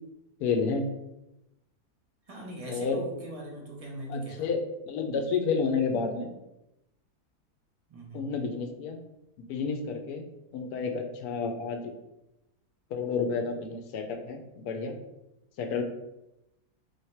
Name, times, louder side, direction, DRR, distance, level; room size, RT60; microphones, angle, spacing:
voice 1, 0.4-0.9 2.7-3.0 4.1-6.3 8.1-9.0 9.4-10.2 10.5-11.9 12.9-15.0 15.6-15.8, left 5 dB, 75° left, 4 dB, 1.1 m, -30 dB
voice 2, 2.3-4.5 7.9-8.3, right 1 dB, 30° right, -2 dB, 0.7 m, -40 dB
3.2 x 2.8 x 4.4 m, 0.91 s
omnidirectional pair, 1.7 m